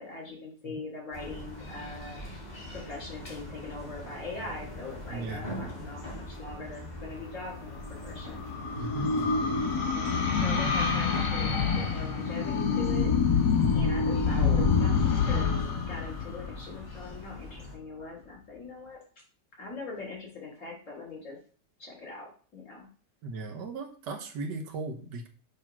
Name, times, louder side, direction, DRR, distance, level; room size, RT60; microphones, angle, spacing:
voice 1, 0.0-2.2 2.7-7.8 8.0-8.4 9.8-13.1 13.7-15.6 15.9-19.0 19.6-21.4 21.8-22.9, left 3 dB, 55° left, -2 dB, 3.8 m, -42 dB
sound 1, 1.1-17.7, left 1 dB, 25° left, 2.5 m, -43 dB
voice 2, 5.1-5.5 8.8-9.1 23.2-25.3, right 3 dB, 80° right, 3 dB, 1.6 m, -37 dB
sound 2, 7.6-17.2, left 5 dB, 70° left, 2.1 m, -27 dB
6.4 x 3.4 x 5.9 m, 0.40 s
omnidirectional pair, 1.9 m